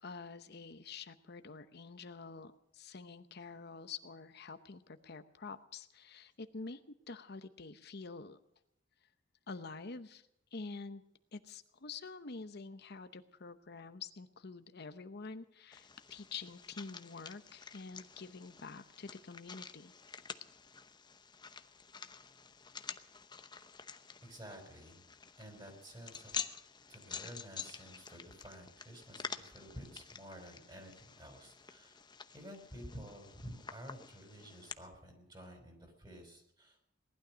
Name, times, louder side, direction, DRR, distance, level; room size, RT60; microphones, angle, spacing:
voice 1, 0.0-8.4 9.5-11.0 11.3-19.9, left 4 dB, 60° left, 10 dB, 0.9 m, -47 dB
sound 1, 15.7-34.7, left 6 dB, 25° left, 0.8 m, -49 dB
voice 2, 24.2-25.0 25.4-26.4 26.9-32.0 32.3-36.9, equal, 25° right, 4 dB, 5.0 m, -51 dB
19.0 x 12.0 x 6.3 m, 0.78 s
head